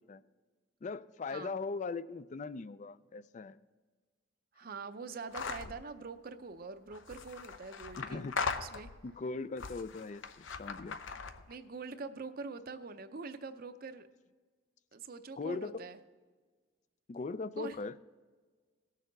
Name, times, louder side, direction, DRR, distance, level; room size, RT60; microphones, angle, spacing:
voice 1, 0.8-3.6 8.0-8.3 9.0-11.0 15.4-15.9 17.1-18.0, left 4 dB, 40° left, 16 dB, 0.4 m, -39 dB
voice 2, 4.6-8.2 8.6-8.9 11.5-14.1 14.9-16.0 17.6-17.8, right 4 dB, 50° right, 9 dB, 0.6 m, -44 dB
sound 1, 5.3-5.8 6.9-9.1 9.6-11.6, left 5 dB, 85° left, 0.7 m, -39 dB
18.0 x 6.6 x 3.9 m, 1.4 s
head